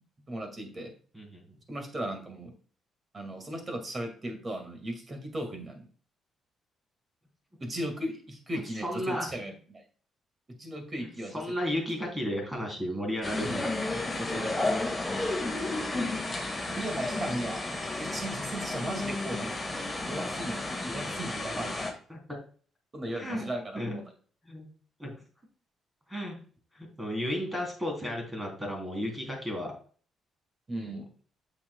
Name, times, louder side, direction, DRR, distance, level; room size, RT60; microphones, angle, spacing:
voice 1, 0.3-0.9 1.7-2.5 3.1-5.9 7.6-9.8 10.6-11.4 14.2-14.7 16.7-17.6 18.0-21.9 22.9-24.0 30.7-31.1, right 1 dB, 30° right, 5 dB, 2.1 m, -37 dB
voice 2, 1.1-1.6 8.8-9.3 11.0-11.1 11.3-13.7 14.5-14.6 16.6-16.8 17.1-17.2 22.1-22.4 23.1-23.5 23.7-24.0 24.4-24.7 25.0-25.1 26.1-26.4 26.7-29.7 30.8-31.0, equal, 15° right, 1 dB, 3.3 m, -34 dB
sound 1, 13.2-21.9, left 2 dB, 15° left, 1.9 m, -32 dB
8.5 x 6.1 x 2.3 m, 0.42 s
cardioid pair, 90°, 0 cm